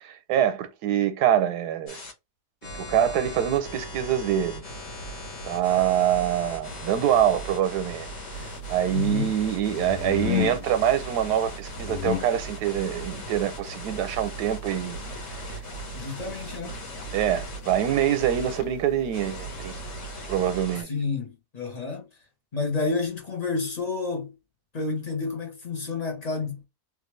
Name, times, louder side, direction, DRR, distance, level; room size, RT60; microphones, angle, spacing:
voice 1, 0.0-2.0 2.8-4.6 5.5-8.1 8.7-15.0 16.6-16.7 17.1-19.8 20.3-20.9, right 10 dB, 85° right, 1.2 m, -25 dB
sound 1, 1.9-2.1 2.6-18.6 19.1-20.8, left 1 dB, 55° left, 1.5 m, -39 dB
sound 2, 8.3-20.6, left 4 dB, 70° left, 1.1 m, -37 dB
voice 2, 8.9-9.3 15.9-16.8 20.8-22.1 22.5-24.4 24.7-26.6, left 4 dB, 35° left, 0.8 m, -30 dB
3.2 x 2.4 x 3.0 m
omnidirectional pair, 1.7 m